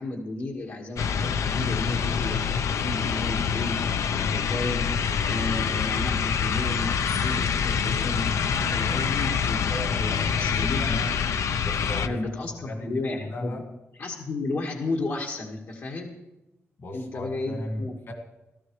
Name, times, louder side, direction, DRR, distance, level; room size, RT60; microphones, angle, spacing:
voice 1, 0.0-11.0 12.0-13.5 14.0-16.2 16.9-17.9, left 2 dB, 70° left, -2 dB, 1.7 m, -33 dB
sound 1, 1.0-12.1, left 7 dB, 85° left, 0.5 m, -26 dB
voice 2, 9.4-11.1 11.6-12.9 13.3-13.6 16.8-18.1, left 1 dB, 50° left, 2 dB, 2.0 m, -36 dB
17.0 x 14.0 x 3.2 m, 0.97 s
wide cardioid pair, 140°, 5 cm